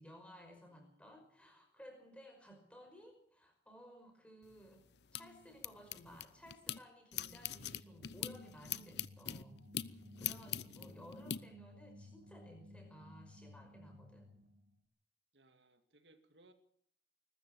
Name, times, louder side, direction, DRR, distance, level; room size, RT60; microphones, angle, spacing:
voice 1, 0.0-4.9 5.1-9.6 10.2-14.3, equal, 5° left, 5.3 m, -57 dB
voice 2, 0.7-1.3 10.3-11.0 15.3-16.5, right 1 dB, 90° right, 2.3 m, -68 dB
sound 1, 4.4-6.8 7.1-11.4, left 10 dB, 80° left, 0.7 m, -43 dB
sound 2, 7.4-14.8, left 1 dB, 70° right, 3.2 m, -58 dB
21.5 x 13.5 x 9.1 m
head